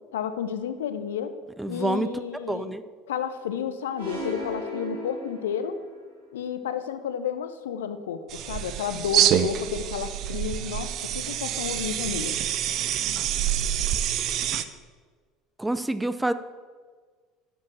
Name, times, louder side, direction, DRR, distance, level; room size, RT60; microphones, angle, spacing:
voice 1, 0.1-1.3 1.7-2.7 3.1-5.8 6.3-12.4, left 8 dB, 70° left, 11 dB, 0.8 m, -31 dB
voice 2, 1.6-2.1 2.5-2.8 15.6-16.3, right 2 dB, 10° right, 12 dB, 0.6 m, -27 dB
sound 1, 4.0-6.0, equal, 75° right, 3.7 m, -36 dB
sound 2, 8.3-14.6, right 11 dB, 45° right, 0.7 m, -26 dB
11.0 x 7.6 x 7.3 m, 1.5 s
figure-of-eight pair, 65°, 0 cm